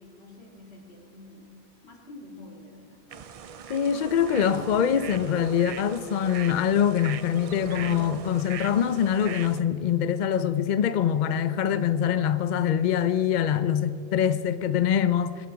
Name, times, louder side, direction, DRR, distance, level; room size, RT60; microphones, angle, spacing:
voice 1, 0.0-1.5 1.8-3.0, left 2 dB, 80° left, 2.6 m, -47 dB
sound 1, 3.1-9.6, right 7 dB, 50° right, 0.4 m, -40 dB
voice 2, 3.7-15.5, left 9 dB, 55° left, 0.6 m, -24 dB
21.5 x 11.5 x 4.7 m
omnidirectional pair, 1.1 m